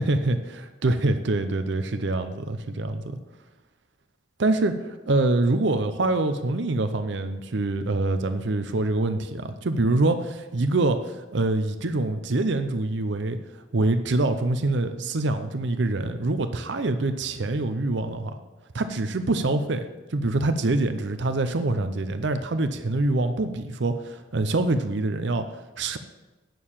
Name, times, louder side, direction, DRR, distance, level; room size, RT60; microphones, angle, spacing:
voice 1, 0.0-3.2 4.4-18.3 18.7-26.0, right 2 dB, 60° right, 9 dB, 0.6 m, -25 dB
9.2 x 6.6 x 7.2 m, 1.2 s
head